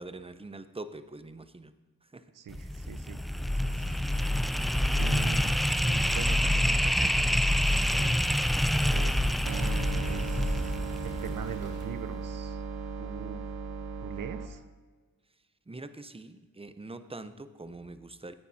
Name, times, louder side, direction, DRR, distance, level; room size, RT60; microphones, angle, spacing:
voice 1, 0.0-1.7 2.0-2.3 15.7-18.3, right 2 dB, 15° right, 12 dB, 0.7 m, -44 dB
voice 2, 2.3-3.2 3.6-3.9 4.9-5.6 5.8-8.2 8.8-9.2 9.9-12.6 13.0-13.4 14.0-14.6, right 7 dB, 60° right, 11 dB, 0.7 m, -42 dB
sound 1, 2.5-11.6, equal, ahead, 0.3 m, -27 dB
sound 2, 3.6-11.8, left 2 dB, 40° left, 3.4 m, -57 dB
sound 3, 9.5-14.5, right 5 dB, 80° right, 0.9 m, -36 dB
14.0 x 9.4 x 2.8 m, 1.4 s
supercardioid pair, 45°, 37 cm